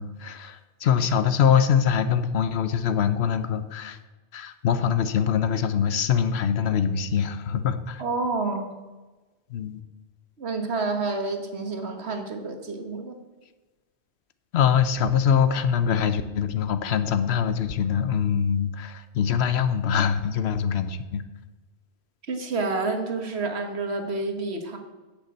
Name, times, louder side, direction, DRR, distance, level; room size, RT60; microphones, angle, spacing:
voice 1, 0.0-4.0 4.3-8.0 9.5-9.8 14.5-21.2, left 7 dB, 75° left, 11 dB, 1.0 m, -23 dB
voice 2, 8.0-8.7 10.4-13.2 22.3-24.8, right 3 dB, 75° right, 5 dB, 1.6 m, -29 dB
8.3 x 6.9 x 7.9 m, 1.2 s
omnidirectional pair, 1.1 m